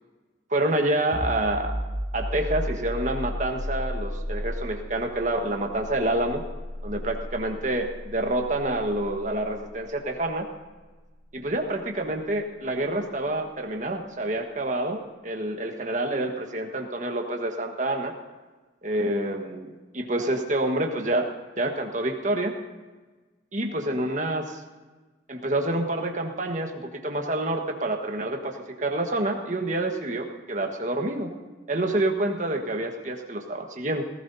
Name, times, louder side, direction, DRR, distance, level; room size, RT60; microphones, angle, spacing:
voice 1, 0.5-1.8 2.1-6.4 6.8-10.5 11.3-18.1 18.8-21.3 21.6-22.5 23.5-24.6 25.3-31.3 31.7-34.0, right 1 dB, 40° right, 3 dB, 1.4 m, -27 dB
sound 1, 1.1-12.5, equal, 70° right, 3.1 m, -35 dB
18.5 x 16.5 x 2.8 m, 1.3 s
head